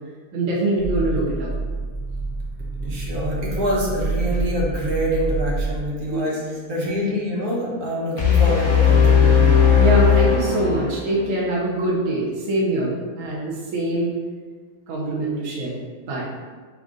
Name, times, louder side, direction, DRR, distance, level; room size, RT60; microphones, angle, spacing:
voice 1, 0.3-1.5 6.1-6.2 9.8-14.1 14.9-16.3, right 1 dB, 65° right, -4 dB, 1.2 m, -24 dB
sound 1, 0.8-5.8, right 3 dB, 45° right, 0.7 m, -27 dB
voice 2, 2.8-6.4 6.7-9.6, equal, 85° right, -5 dB, 1.5 m, -25 dB
sound 2, 8.2-11.2, left 7 dB, 45° left, 0.7 m, -16 dB
3.7 x 3.6 x 3.7 m, 1.5 s
omnidirectional pair, 1.5 m